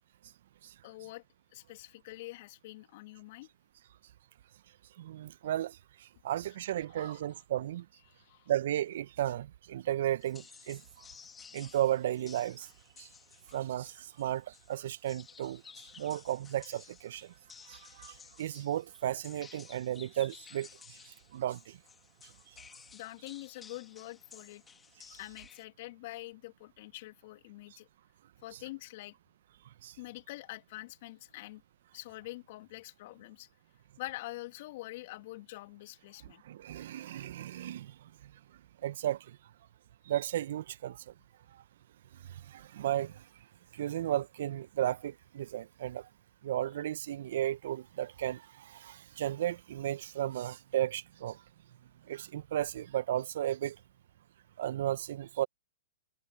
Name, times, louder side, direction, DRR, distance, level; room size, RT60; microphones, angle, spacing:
voice 1, 0.8-1.2 1.5-3.5 6.8-7.2 8.1-8.5 15.9-16.1 22.9-24.6 25.1-27.9 28.4-29.1 30.0-31.6 31.9-33.5 34.0-36.4, left 19 dB, 50° left, 2.5 m, -45 dB
voice 2, 5.0-5.8 6.2-7.8 8.5-10.8 11.5-12.7 13.0-13.1 13.5-15.6 16.0-17.3 17.7-21.0 21.3-21.8 29.8-29.9 36.4-37.9 38.8-39.2 40.1-41.0 42.5-43.2 43.7-46.1 46.4-51.4 52.1-53.8 54.6-55.5, right 12 dB, 60° right, 1.1 m, -34 dB
sound 1, 10.2-25.6, left 6 dB, 15° left, 1.8 m, -55 dB
hypercardioid pair, 120°, 0 cm